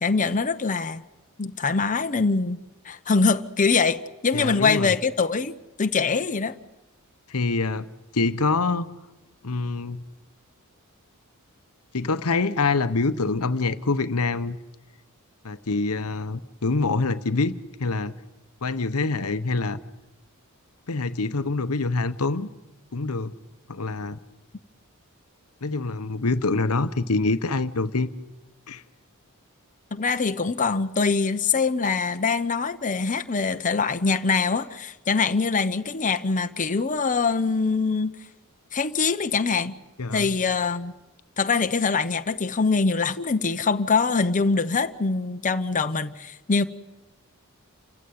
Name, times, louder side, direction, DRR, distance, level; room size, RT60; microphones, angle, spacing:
voice 1, 0.0-1.0 1.4-2.6 2.8-5.5 5.8-6.6 29.9-38.1 38.7-39.8 40.1-40.9 41.4-46.6, left 4 dB, 35° left, 0.9 m, -23 dB
voice 2, 4.3-5.0 7.3-7.9 8.1-8.9 9.4-10.0 11.9-14.6 15.4-18.1 18.6-19.8 20.9-22.5 22.9-23.3 23.7-24.2 25.6-28.1 28.7-28.8 40.0-40.3, left 3 dB, 80° left, 1.0 m, -25 dB
28.5 x 15.5 x 9.5 m
head